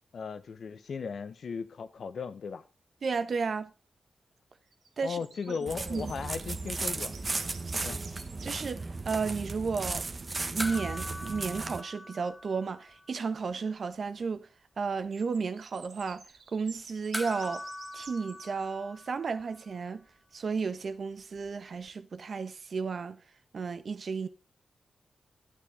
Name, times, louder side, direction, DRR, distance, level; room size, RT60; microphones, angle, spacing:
voice 1, 0.1-2.6 5.0-7.5 7.7-8.0, left 5 dB, 70° left, 1.2 m, -37 dB
voice 2, 3.0-3.7 5.0-5.2 5.5-5.6 5.9-6.1 8.4-10.1 10.5-14.5 14.8-16.2 16.5-17.6 17.9-20.0 20.3-23.2 23.5-24.3, right 5 dB, 60° right, 1.3 m, -33 dB
sound 1, 4.7-8.6 14.8-18.5, right 5 dB, 90° right, 3.3 m, -52 dB
sound 2, 5.7-11.8, right 3 dB, 35° right, 1.2 m, -36 dB
sound 3, 10.6-13.3 13.5-13.6 17.1-19.7 21.9-22.0, left 1 dB, 5° left, 0.8 m, -42 dB
12.0 x 9.3 x 5.0 m
wide cardioid pair, 110°, 0 cm